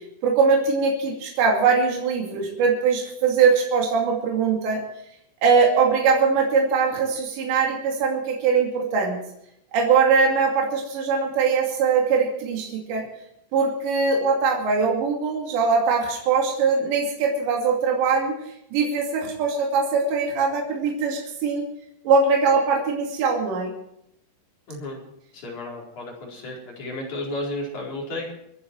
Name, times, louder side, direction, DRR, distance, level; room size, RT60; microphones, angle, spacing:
voice 1, 0.2-4.8 5.4-9.2 9.7-13.1 13.5-18.4 18.7-21.7 22.0-23.7, right 5 dB, 75° right, 0 dB, 4.7 m, -21 dB
voice 2, 24.7-25.0 25.3-28.3, left 1 dB, 40° left, -3 dB, 5.7 m, -33 dB
25.0 x 10.5 x 4.7 m, 0.77 s
omnidirectional pair, 5.1 m